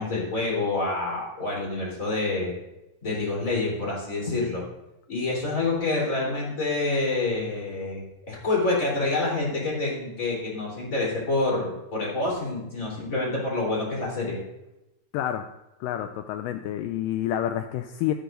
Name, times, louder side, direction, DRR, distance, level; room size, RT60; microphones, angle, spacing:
voice 1, 0.0-2.5 3.0-4.6 5.1-14.4, left 2 dB, 20° left, -4 dB, 3.7 m, -27 dB
voice 2, 15.1-15.5 15.8-18.1, left 11 dB, 85° left, 8 dB, 1.9 m, -28 dB
15.0 x 9.7 x 2.6 m, 0.94 s
omnidirectional pair, 4.2 m